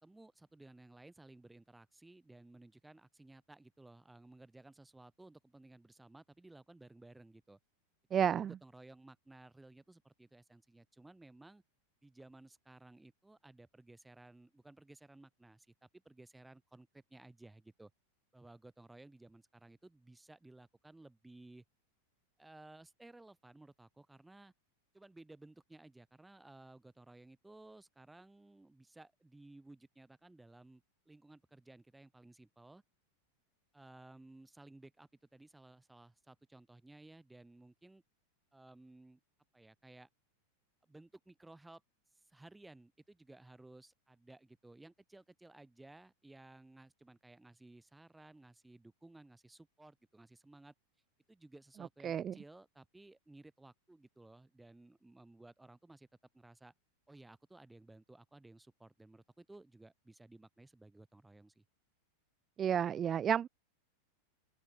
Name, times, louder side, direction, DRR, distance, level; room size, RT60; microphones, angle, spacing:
voice 1, 0.0-7.6 8.1-11.6 12.0-17.9 18.3-21.6 22.4-24.5 24.9-32.8 33.7-38.0 38.5-39.2 39.5-40.1 40.8-41.8 42.2-50.7 51.3-56.1 56.3-56.7 57.1-61.6, right 2 dB, 5° right, 3.2 m, -58 dB
voice 2, 8.1-8.5 52.0-52.3 62.6-63.5, right 9 dB, 25° right, 0.3 m, -31 dB
open air
figure-of-eight pair, 90°, 0 cm